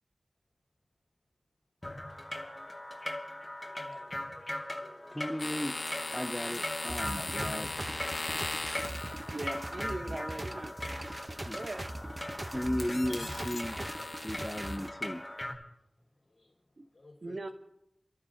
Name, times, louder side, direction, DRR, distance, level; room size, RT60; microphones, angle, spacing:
sound 1, 1.8-15.6, left 1 dB, 25° left, 1.7 m, -40 dB
voice 1, 3.6-4.5 4.8-5.2 16.2-16.6 16.9-17.5, left 2 dB, 65° left, 4.9 m, -57 dB
voice 2, 5.1-5.8 6.1-7.7 11.1-11.6 12.5-13.8 14.2-15.2, equal, 5° left, 0.6 m, -36 dB
sound 2, 5.4-9.4 11.4-11.8 12.2-14.8, left 3 dB, 80° left, 1.4 m, -39 dB
sound 3, 6.9-14.9, right 1 dB, 25° right, 0.8 m, -40 dB
voice 3, 9.3-10.8 11.5-11.9 16.8-16.9 17.2-17.5, right 2 dB, 60° right, 1.0 m, -39 dB
28.5 x 12.5 x 2.8 m
wide cardioid pair, 65°, 0 cm